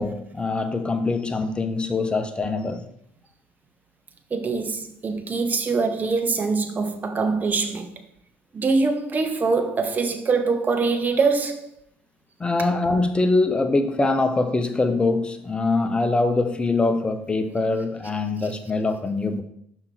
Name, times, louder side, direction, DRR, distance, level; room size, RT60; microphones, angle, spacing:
voice 1, 0.0-2.9 12.4-19.4, left 3 dB, 20° left, 0.9 m, -23 dB
voice 2, 4.3-7.9 8.5-11.7, right 4 dB, 35° right, 1.0 m, -23 dB
5.8 x 5.0 x 4.5 m
hypercardioid pair, 70°, 5 cm